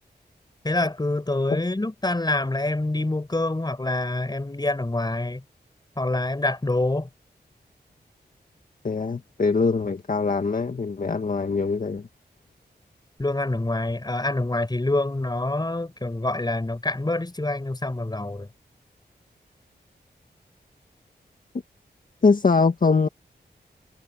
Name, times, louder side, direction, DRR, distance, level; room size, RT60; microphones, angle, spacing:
voice 1, 0.6-5.4 6.0-7.1 13.2-18.5, left 2 dB, 25° left, 6.0 m, -26 dB
voice 2, 8.8-12.1 22.2-23.1, left 4 dB, 50° left, 1.9 m, -22 dB
wide cardioid pair, 85°, 17 cm